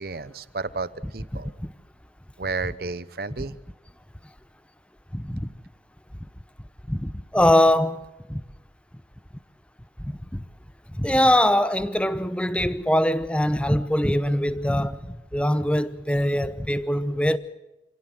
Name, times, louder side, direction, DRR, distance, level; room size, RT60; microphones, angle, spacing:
voice 1, 0.0-1.5 2.4-3.6, right 3 dB, 55° right, 0.8 m, -32 dB
voice 2, 5.1-5.5 6.9-8.0 8.3-8.4 10.0-10.4 10.9-17.4, left 1 dB, 5° left, 0.8 m, -22 dB
27.0 x 17.0 x 7.8 m
head